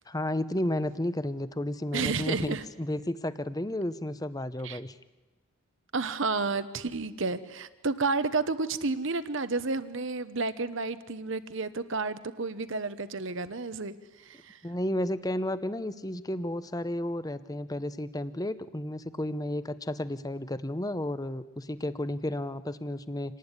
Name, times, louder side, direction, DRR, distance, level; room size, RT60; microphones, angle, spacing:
voice 1, 0.1-5.0 14.6-23.4, left 1 dB, 15° left, 13 dB, 0.8 m, -32 dB
voice 2, 1.9-2.6 4.6-4.8 5.9-14.6, right 3 dB, 55° right, 12 dB, 1.0 m, -31 dB
27.5 x 19.0 x 9.8 m, 1.2 s
head